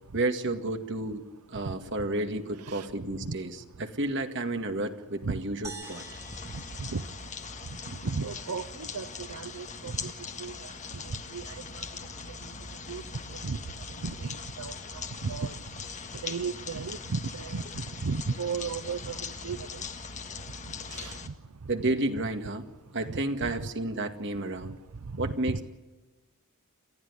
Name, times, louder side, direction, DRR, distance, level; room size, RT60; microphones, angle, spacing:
voice 1, 0.1-6.0 21.7-22.7 22.9-24.8 25.2-25.6, right 2 dB, 55° right, 2.0 m, -31 dB
voice 2, 2.6-2.9 3.2-3.4 5.2-5.6 6.3-15.8 16.1-19.9 20.4-21.4 21.6-21.7 23.1-23.2 23.4-23.7 24.6-25.6, right 4 dB, 85° right, 0.7 m, -36 dB
sound 1, 5.6-8.1, right 3 dB, 15° right, 3.1 m, -47 dB
sound 2, 5.8-21.3, left 5 dB, 35° left, 1.7 m, -41 dB
29.0 x 14.0 x 9.8 m
head